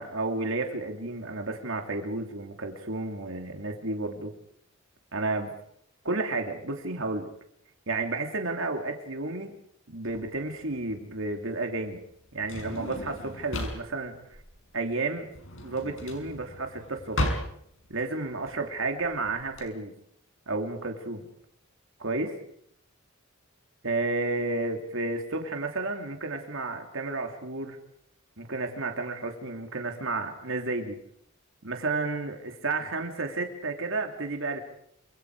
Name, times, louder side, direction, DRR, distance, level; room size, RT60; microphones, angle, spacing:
voice 1, 0.0-4.3 5.1-5.5 6.0-7.3 7.9-9.5 9.9-12.0 12.3-14.1 14.7-15.3 15.6-17.2 17.9-19.9 20.5-21.2 22.0-22.4 23.8-27.8 28.4-31.0 31.6-34.6, right 3 dB, 70° right, 3 dB, 3.1 m, -31 dB
Drawer open or close, 10.0-19.6, left 1 dB, 70° left, 6.3 m, -36 dB
27.5 x 26.0 x 4.9 m, 0.70 s
head